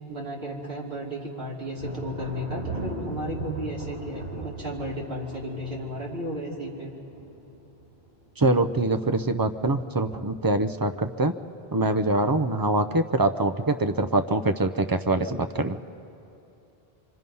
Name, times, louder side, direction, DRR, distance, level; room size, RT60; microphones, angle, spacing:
voice 1, 0.1-6.9, equal, 65° right, -4 dB, 3.3 m, -34 dB
Thunder, 1.8-8.2 8.5-9.1 9.6-10.4, right 1 dB, 50° right, 4.3 m, -38 dB
voice 2, 8.4-11.4 11.7-15.8, right 2 dB, 25° right, 8 dB, 0.5 m, -24 dB
26.0 x 24.5 x 5.5 m, 2.8 s
omnidirectional pair, 1.1 m